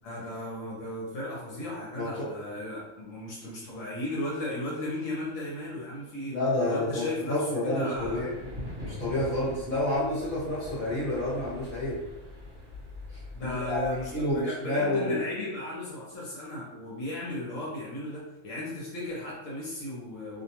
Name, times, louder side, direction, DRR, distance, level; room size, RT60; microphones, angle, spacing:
voice 1, 0.0-6.4 6.7-8.2 13.3-20.4, left 1 dB, 70° left, -5 dB, 1.0 m, -35 dB
voice 2, 1.9-2.3 6.3-8.3 8.8-12.0 13.1-13.8 14.1-15.1, left 1 dB, 40° left, -10 dB, 1.2 m, -29 dB
sound 1, 7.9-14.4, left 1 dB, 35° right, 1.1 m, -42 dB
2.5 x 2.2 x 2.8 m, 0.99 s
omnidirectional pair, 1.5 m